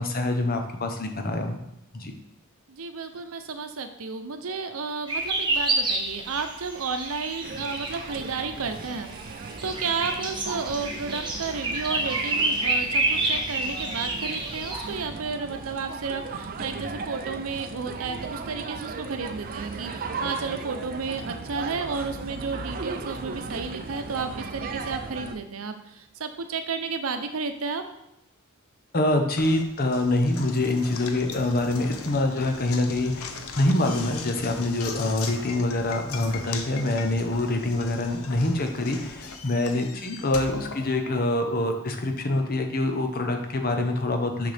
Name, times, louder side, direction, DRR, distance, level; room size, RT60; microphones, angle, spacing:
voice 1, 0.0-1.6 1.9-2.1 28.9-44.5, left 2 dB, 45° left, 4 dB, 0.9 m, -25 dB
voice 2, 2.7-9.1 9.4-27.8, right 4 dB, 85° right, 7 dB, 0.7 m, -32 dB
sound 1, 5.1-15.0, right 2 dB, 25° right, 1.1 m, -29 dB
sound 2, 7.4-25.4, right 4 dB, 45° right, 0.5 m, -37 dB
Knock, 29.4-41.5, left 5 dB, 90° left, 0.7 m, -39 dB
6.4 x 5.9 x 3.4 m, 0.84 s
head